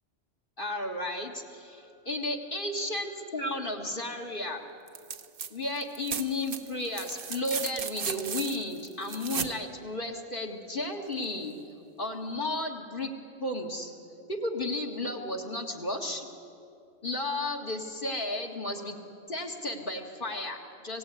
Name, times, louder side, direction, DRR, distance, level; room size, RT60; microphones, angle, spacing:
voice 1, 0.6-4.6 5.5-11.5 12.0-13.1 13.4-13.9 14.3-16.3 17.0-19.0 19.3-21.0, left 1 dB, 45° left, 1 dB, 2.2 m, -33 dB
sound 1, 4.9-5.5 5.8-9.6 11.2-11.3, right 6 dB, 50° right, 1.0 m, -36 dB
25.5 x 17.0 x 9.4 m, 2.5 s
omnidirectional pair, 1.2 m